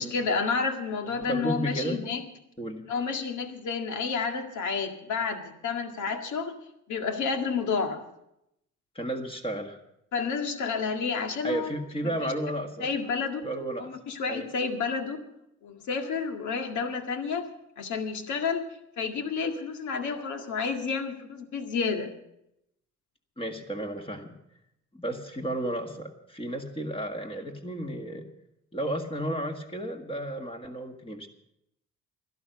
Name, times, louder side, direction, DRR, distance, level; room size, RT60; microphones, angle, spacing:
voice 1, 0.0-2.2 2.9-6.6 6.9-8.0 10.1-11.7 12.0-12.3 12.8-13.4 13.8-15.2 15.6-17.5 17.8-18.6 19.0-22.1, left 5 dB, 75° left, 5 dB, 1.9 m, -30 dB
voice 2, 1.1-2.0 2.6-2.8 9.0-9.8 11.4-12.9 13.4-13.9 14.3-14.5 23.4-24.4 24.9-28.2 28.7-31.3, right 1 dB, 20° left, 3 dB, 1.9 m, -33 dB
12.0 x 12.0 x 6.6 m, 0.80 s
cardioid pair, 90°, 30 cm